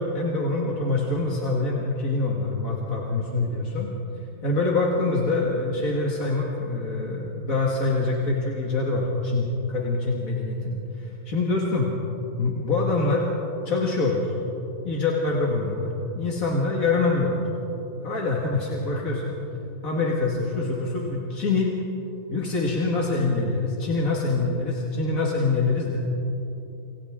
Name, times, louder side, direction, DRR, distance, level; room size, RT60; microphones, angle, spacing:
voice 1, 0.0-3.9 4.4-11.9 12.4-13.3 13.7-14.3 14.8-17.5 18.0-19.3 19.8-21.7 22.3-26.0, left 3 dB, 75° left, -3 dB, 2.6 m, -25 dB
28.5 x 27.0 x 3.7 m, 3.0 s
omnidirectional pair, 1.5 m